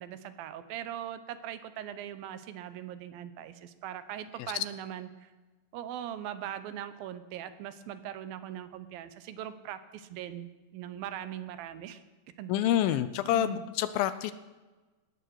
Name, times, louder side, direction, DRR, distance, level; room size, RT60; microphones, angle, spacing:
voice 1, 0.0-5.3 5.7-12.0 12.4-13.0 13.3-13.6, right 10 dB, 80° right, 12 dB, 2.4 m, -41 dB
voice 2, 12.5-14.3, left 11 dB, 80° left, 13 dB, 2.3 m, -27 dB
18.5 x 13.0 x 4.7 m, 1.2 s
omnidirectional pair, 4.4 m